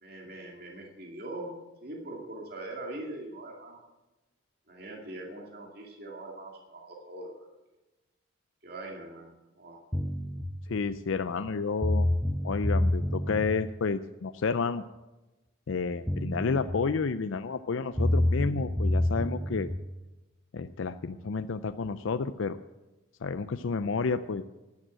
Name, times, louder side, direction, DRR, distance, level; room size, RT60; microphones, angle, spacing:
voice 1, 0.0-3.8 4.7-7.5 8.6-9.8, right 2 dB, 50° right, 0 dB, 2.4 m, -42 dB
sound 1, 9.9-10.4 11.5-11.6 11.8-13.5 15.7-15.8 16.1-16.7 18.0-19.7, left 1 dB, ahead, 0.7 m, -27 dB
voice 2, 10.7-12.1 12.4-14.8 15.7-19.7 20.5-22.6 23.2-24.4, left 4 dB, 70° left, 10 dB, 0.5 m, -30 dB
12.5 x 10.5 x 7.7 m, 1.1 s
head